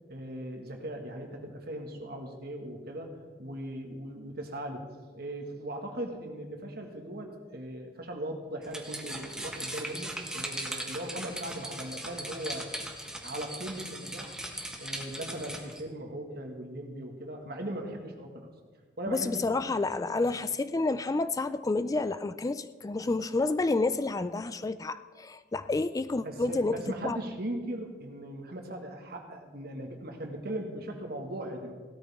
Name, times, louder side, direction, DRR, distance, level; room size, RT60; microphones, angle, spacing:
voice 1, 0.1-12.7 13.2-14.4 14.8-18.5 19.0-19.5 20.2-20.4 26.2-31.7, right 1 dB, 60° right, 3 dB, 1.8 m, -39 dB
sound 1, 8.6-15.8, right 1 dB, 5° right, 1.3 m, -39 dB
voice 2, 19.1-27.2, left 3 dB, 20° left, 13 dB, 0.3 m, -29 dB
17.0 x 13.0 x 3.6 m, 1.5 s
head